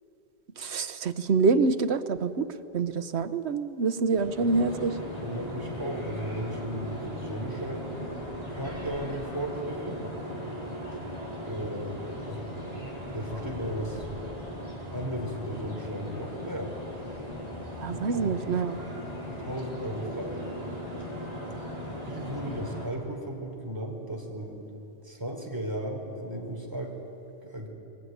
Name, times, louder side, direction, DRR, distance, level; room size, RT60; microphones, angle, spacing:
voice 1, 0.6-2.5 2.7-5.0 17.8-18.8, right 4 dB, 85° right, 11 dB, 1.2 m, -26 dB
Alanis - From the Castle - Desde el castillo, 4.1-22.9, equal, 40° left, 5.3 m, -38 dB
voice 2, 5.2-8.0 8.5-10.0 11.4-12.5 13.1-14.0 14.9-16.7 17.9-18.5 19.3-20.4 22.1-24.6 25.0-27.0 27.4-27.7, right 1 dB, 20° right, 1 dB, 4.0 m, -35 dB
23.5 x 19.5 x 9.5 m, 2.9 s
omnidirectional pair, 1.1 m